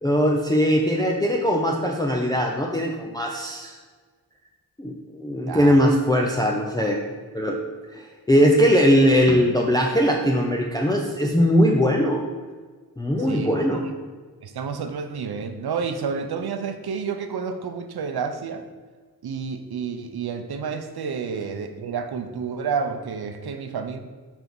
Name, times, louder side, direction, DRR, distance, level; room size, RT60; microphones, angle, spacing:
voice 1, 0.0-3.8 4.8-7.0 7.3-7.6 7.9-8.0 8.3-12.2 13.0-13.9, equal, 10° left, 0 dB, 0.5 m, -20 dB
voice 2, 14.4-18.6 19.2-24.0, right 6 dB, 85° right, 8 dB, 0.7 m, -30 dB
6.1 x 4.5 x 5.3 m, 1.5 s
wide cardioid pair, 170°, 37 cm